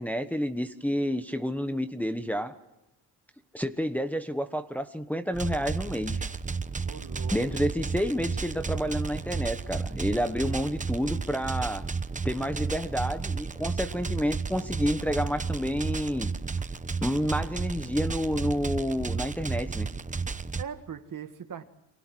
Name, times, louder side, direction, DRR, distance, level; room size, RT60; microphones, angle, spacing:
voice 1, 0.0-2.5 3.5-6.2 7.3-11.9 12.2-16.3 17.0-19.9, equal, 5° left, 7 dB, 1.1 m, -29 dB
sound 1, 5.3-20.6, right 4 dB, 15° right, 0.9 m, -33 dB
voice 2, 6.8-7.6 20.3-21.6, right 8 dB, 45° right, 8 dB, 1.9 m, -41 dB
30.0 x 24.5 x 6.2 m, 0.97 s
cardioid pair, 115°, 44 cm